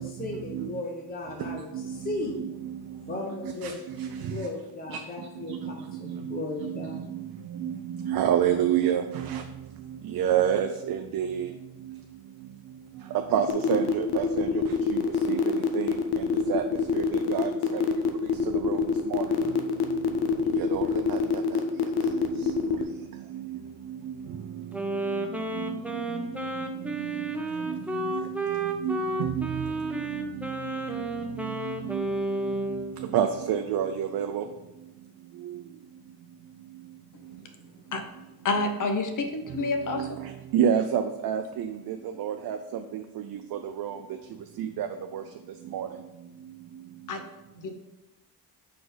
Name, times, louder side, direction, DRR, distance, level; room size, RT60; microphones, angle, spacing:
voice 1, 0.0-2.4 3.1-3.7 4.3-7.0, left 2 dB, 25° left, -1 dB, 0.8 m, -36 dB
voice 2, 1.5-2.8 3.4-3.7 4.0-4.5 4.9-5.0 5.5-5.7 6.1-7.2 7.5-9.4 10.0-11.5 13.3-14.6 14.9-15.0 15.3-15.9 16.5-16.6 16.9-17.8 18.6-18.8 19.1-19.2 20.6-21.6 22.4-22.6 23.3-23.6 24.0-24.1 25.1-25.2 25.5-26.8 27.6-27.8 28.1-28.4 28.8-29.7 30.6-31.0 31.4-32.1 32.5-32.6 33.0-34.4 39.9-42.6 42.9-43.2 43.5-44.0 44.6-44.9 45.1-45.2 45.7-45.9, right 9 dB, 65° right, 6 dB, 0.5 m, -29 dB
sound 1, 13.5-22.8, left 6 dB, 85° left, 0.7 m, -25 dB
Wind instrument woodwind instrument, 24.7-32.9, right 2 dB, 5° right, 0.6 m, -31 dB
voice 3, 38.4-40.1 47.1-47.2 47.6-47.7, left 3 dB, 55° left, 6 dB, 0.9 m, -28 dB
4.6 x 4.3 x 5.0 m, 1.0 s
cardioid pair, 100°, 38 cm